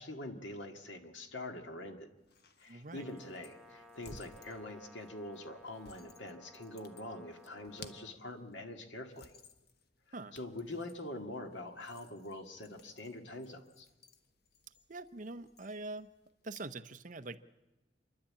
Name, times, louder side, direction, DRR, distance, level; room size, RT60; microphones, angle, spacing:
voice 1, 0.0-2.1 2.6-9.3 10.3-13.9, left 1 dB, 80° left, 5 dB, 2.0 m, -44 dB
sound 1, 2.2-16.8, left 4 dB, 60° left, 1.2 m, -59 dB
voice 2, 2.7-3.1 10.1-10.4 14.9-16.1 16.4-17.4, right 2 dB, 45° right, 10 dB, 0.8 m, -44 dB
Brass instrument, 2.9-8.2, left 1 dB, ahead, 1.1 m, -58 dB
28.0 x 11.5 x 8.7 m, 1.1 s
head